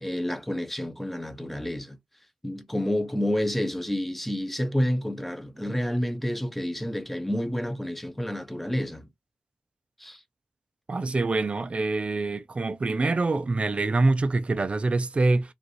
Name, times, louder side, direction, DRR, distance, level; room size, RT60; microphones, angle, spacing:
voice 1, 0.0-2.0 2.4-9.1 10.0-10.2, equal, 5° left, 0.8 m, -29 dB
voice 2, 10.9-15.5, right 3 dB, 35° right, 0.6 m, -25 dB
5.1 x 2.6 x 3.1 m
wide cardioid pair, 125°, 3 cm